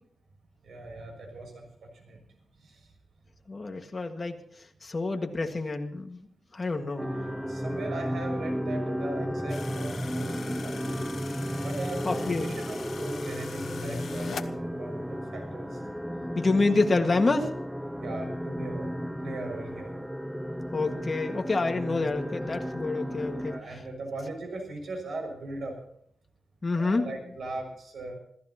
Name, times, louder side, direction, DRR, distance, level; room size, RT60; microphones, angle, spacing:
voice 1, 0.6-2.2 2.5-2.9 6.9-11.2 11.6-15.8 16.5-16.6 18.0-18.9 19.2-19.9 23.3-25.8 26.7-28.2, right 2 dB, 70° right, 2 dB, 6.3 m, -39 dB
voice 2, 3.5-4.4 4.8-6.2 6.5-7.0 12.0-12.5 16.3-17.5 20.7-23.6 26.6-27.0, left 3 dB, 30° left, 4 dB, 1.8 m, -27 dB
sound 1, 7.0-23.6, equal, ahead, 0.5 m, -34 dB
sound 2, 9.5-14.5, left 6 dB, 65° left, 1.0 m, -42 dB
27.0 x 15.0 x 3.0 m, 0.67 s
wide cardioid pair, 140°, 0 cm